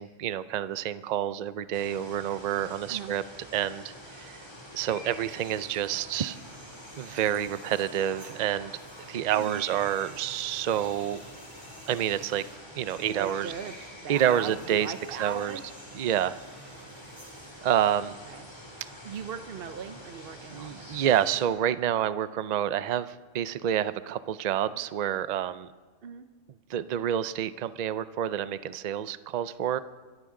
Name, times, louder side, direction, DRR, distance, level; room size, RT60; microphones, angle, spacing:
voice 1, 0.0-3.2 3.5-4.4 4.7-6.4 6.9-8.7 9.1-11.2 11.9-12.4 12.8-13.5 14.1-15.6 15.9-16.4 17.6-18.2 20.5-25.7 26.7-29.8, right 10 dB, 80° right, 14 dB, 0.3 m, -28 dB
sound 1, 1.7-21.5, equal, 20° left, 2.5 m, -46 dB
sound 2, 5.3-5.7 6.1-17.6, equal, 35° right, 5.0 m, -54 dB
voice 2, 13.1-13.7 14.0-15.6 18.0-18.5 19.0-20.9 26.0-26.3, right 7 dB, 55° right, 8 dB, 0.8 m, -39 dB
25.0 x 14.0 x 3.8 m, 1.4 s
omnidirectional pair, 1.4 m